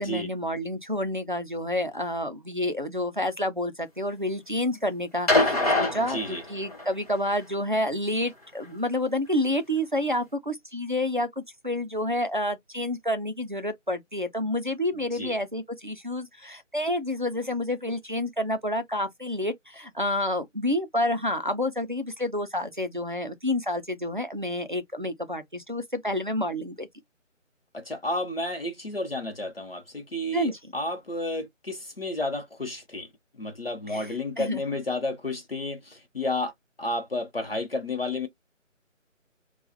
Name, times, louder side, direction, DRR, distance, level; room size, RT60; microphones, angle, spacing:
voice 1, 0.0-26.9 30.3-30.6 33.9-34.1 34.4-34.6, left 1 dB, 40° right, 0.5 m, -29 dB
sound 1, 5.3-6.9 8.2-8.3, left 2 dB, 30° left, 1.4 m, -24 dB
voice 2, 6.0-6.4 15.1-15.3 27.7-33.1 33.4-36.5 36.8-38.3, left 1 dB, 50° left, 0.8 m, -31 dB
3.6 x 2.3 x 2.7 m
figure-of-eight pair, 175°, 39 cm